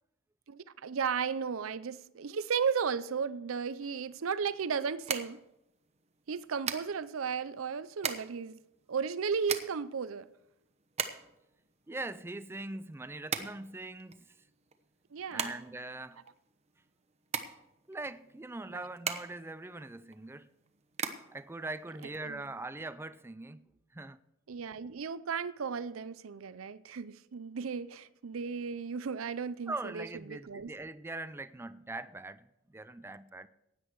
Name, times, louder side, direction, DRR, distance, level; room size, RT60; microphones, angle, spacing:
voice 1, 0.5-5.4 6.3-8.6 8.9-10.3 15.1-15.6 18.7-18.8 22.2-22.4 24.5-30.7, right 6 dB, 85° right, 0.5 m, -35 dB
sound 1, 3.8-22.7, right 6 dB, 35° right, 1.0 m, -41 dB
voice 2, 11.9-14.3 15.3-16.2 17.9-20.5 21.3-23.6 23.9-24.2 29.7-33.5, right 2 dB, 10° right, 0.4 m, -42 dB
16.0 x 9.9 x 4.7 m
head